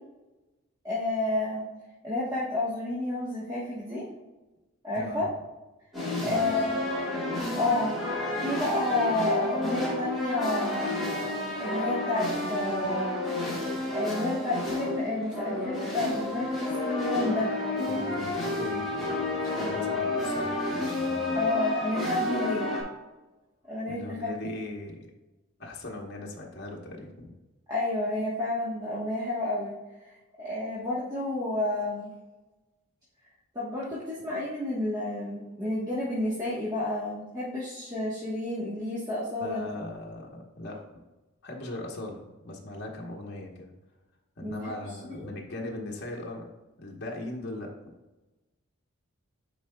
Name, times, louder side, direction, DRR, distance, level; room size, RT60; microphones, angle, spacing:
voice 1, 0.8-1.6 2.0-4.0 4.8-5.3 6.2-6.8 7.5-7.9 8.4-11.0 11.6-13.1 13.9-17.5 21.3-22.7 23.7-24.5 27.7-29.7 30.4-32.1 33.5-39.7 44.4-44.7 45.1-45.3, left 2 dB, 15° right, -7 dB, 1.1 m, -30 dB
voice 2, 4.9-5.3 6.2-6.8 17.9-21.5 23.9-25.0 25.6-27.3 39.4-40.8 41.4-43.7 44.4-46.5 46.8-47.7, left 2 dB, 55° left, -1 dB, 1.1 m, -39 dB
sound 1, 5.9-22.8, left 2 dB, ahead, 2.0 m, -30 dB
10.0 x 4.4 x 2.2 m, 1.1 s
head